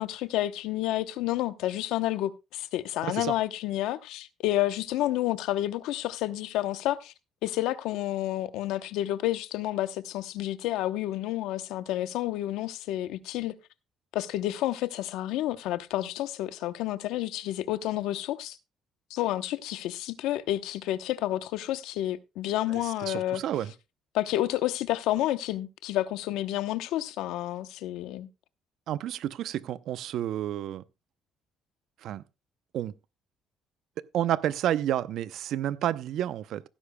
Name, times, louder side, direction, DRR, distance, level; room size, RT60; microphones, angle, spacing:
voice 1, 0.0-7.1 7.4-13.6 14.1-18.6 19.1-23.4 24.1-28.3, left 14 dB, 85° left, 0.9 m, -30 dB
voice 2, 22.7-23.7 28.9-30.8 32.0-32.2 32.7-32.9 34.1-36.6, right 11 dB, 70° right, 0.6 m, -30 dB
16.5 x 9.9 x 2.2 m
cardioid pair, 110°, 0 cm